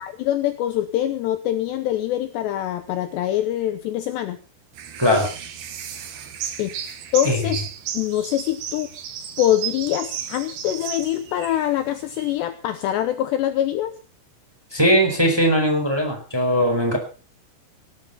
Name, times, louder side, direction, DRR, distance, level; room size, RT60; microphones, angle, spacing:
voice 1, 0.0-4.4 6.6-6.7 7.1-7.7 7.9-8.9 9.4-13.9, left 12 dB, 75° left, 9 dB, 2.7 m, -24 dB
sound 1, 4.7-12.3, right 9 dB, 70° right, 3.9 m, -34 dB
voice 2, 5.0-5.3 7.2-7.4 14.7-17.0, equal, 5° right, 2 dB, 3.6 m, -19 dB
18.5 x 10.0 x 5.7 m, 0.37 s
omnidirectional pair, 5.7 m